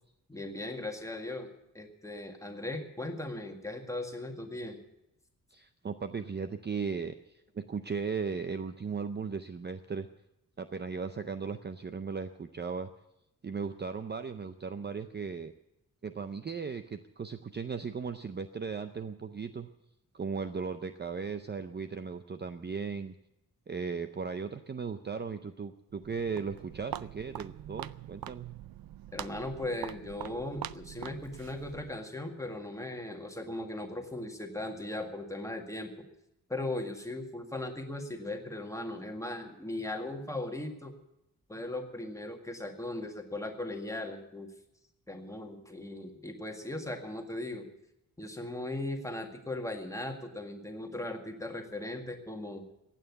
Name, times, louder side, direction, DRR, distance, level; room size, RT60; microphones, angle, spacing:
voice 1, 0.3-1.5 1.7-4.8 29.1-35.9 36.5-40.9 41.5-44.5 45.1-47.7 48.2-52.6, left 2 dB, 10° left, 3 dB, 1.9 m, -38 dB
voice 2, 5.5-10.1 10.6-12.9 13.4-15.5 16.0-19.7 20.1-23.1 23.7-28.5, right 5 dB, 30° right, 10 dB, 0.6 m, -37 dB
Walk footsteps, 25.9-32.1, right 12 dB, 80° right, 0.5 m, -44 dB
15.5 x 9.2 x 9.5 m, 0.86 s
wide cardioid pair, 155°, 35 cm